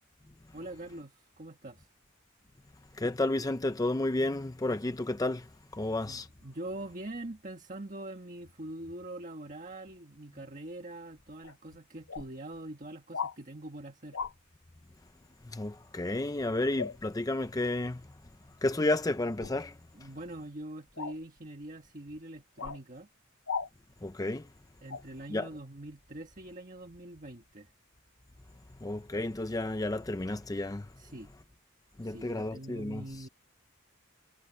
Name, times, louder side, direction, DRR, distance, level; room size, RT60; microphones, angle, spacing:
voice 1, 0.5-1.9 6.0-14.2 19.9-23.1 24.8-27.7 31.0-31.3 32.0-33.3, right 1 dB, 40° right, 1.6 m, -43 dB
voice 2, 2.9-6.3 15.4-18.0 18.6-19.8 24.0-24.5 25.3-25.5 28.8-30.9 32.0-33.0, left 2 dB, 15° left, 0.5 m, -31 dB
sound 1, 11.4-11.5 12.1-12.3 13.1-13.4 14.1-14.3 16.8-17.0 19.4-19.6 21.0-21.2 22.6-22.8 23.5-23.7 24.9-25.0, left 5 dB, 70° left, 0.8 m, -36 dB
head